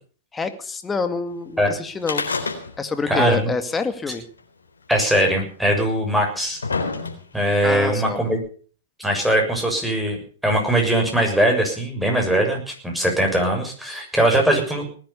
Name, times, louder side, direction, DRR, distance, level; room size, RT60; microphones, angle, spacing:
voice 1, 0.3-2.3 2.8-4.2 7.6-8.2, left 4 dB, 15° left, 8 dB, 2.3 m, -26 dB
sound 1, 2.0-3.0 3.3-3.4 4.4-4.5 5.4-5.5 6.2-7.5 8.4-8.5, left 4 dB, 90° left, 4.0 m, -27 dB
voice 2, 3.1-3.5 4.9-6.6 7.3-8.4 9.0-10.2 10.4-14.9, right 1 dB, 5° right, 1 dB, 7.0 m, -20 dB
19.5 x 10.5 x 7.0 m, 0.44 s
hypercardioid pair, 115°, 0 cm